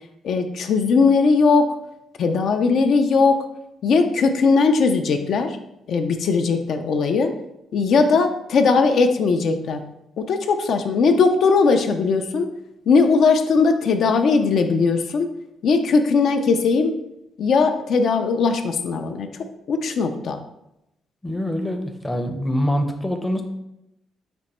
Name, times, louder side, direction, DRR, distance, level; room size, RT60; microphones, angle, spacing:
voice 1, 0.2-1.7 2.2-3.5 3.8-5.6 5.9-7.3 7.7-9.8 10.2-12.5 12.9-15.3 15.6-16.9 17.4-19.3 19.7-20.4, left 4 dB, 65° left, 6 dB, 0.3 m, -19 dB
voice 2, 21.2-23.4, equal, 10° left, 5 dB, 0.5 m, -24 dB
5.1 x 2.1 x 4.1 m, 0.87 s
cardioid pair, 90°, 0 cm